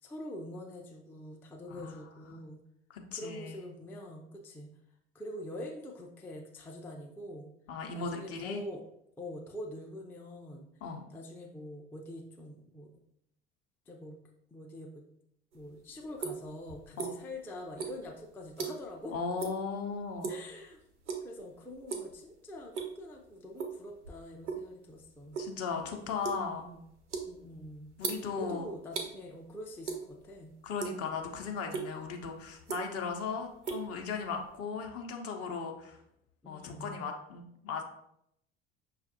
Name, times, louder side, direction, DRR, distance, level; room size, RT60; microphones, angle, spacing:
voice 1, 0.0-2.6 3.1-4.8 5.1-7.5 7.9-8.8 9.2-10.7 11.1-12.9 13.9-14.2 14.5-15.1 15.5-19.1 20.3-20.8 21.2-25.4 26.6-26.8 27.2-27.9 28.3-30.5 36.4-37.0, left 1 dB, 5° left, 0 dB, 0.4 m, -45 dB
voice 2, 2.9-3.7 7.7-8.6 10.8-11.0 17.0-17.1 19.1-20.4 25.4-26.7 28.0-28.7 30.6-36.0 36.5-37.8, left 5 dB, 45° left, 3 dB, 0.7 m, -37 dB
sound 1, 15.5-17.4 17.7-19.0 19.4-19.6 20.0-20.5 21.0-21.4 21.7-22.2 22.5-23.1 23.6-24.7 25.0-29.1 29.8-30.4 30.7-31.3 31.7-31.9 32.4-33.1 33.4-34.5, right 5 dB, 85° right, 0.5 m, -38 dB
5.6 x 2.4 x 2.6 m, 0.76 s
figure-of-eight pair, 60°, 34 cm